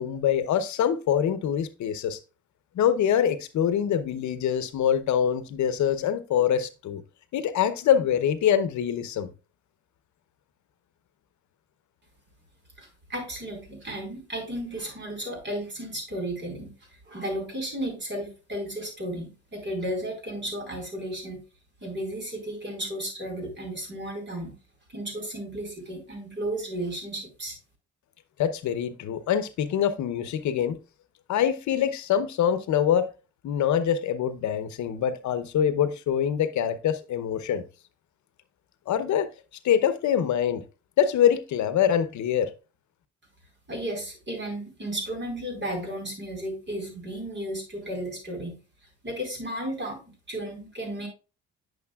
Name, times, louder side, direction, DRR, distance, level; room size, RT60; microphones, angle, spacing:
voice 1, 0.0-2.2 2.8-7.0 7.3-9.3 28.4-30.8 31.3-33.1 33.4-37.6 38.9-39.3 39.6-40.6 41.0-42.5, left 9 dB, 70° left, 0.8 m, -24 dB
voice 2, 12.8-16.7 17.1-21.4 21.8-24.5 24.9-27.6 43.7-48.6 49.0-50.0 50.3-51.1, right 1 dB, 35° right, 4.5 m, -34 dB
9.6 x 6.5 x 2.3 m
cardioid pair, 90°, 30 cm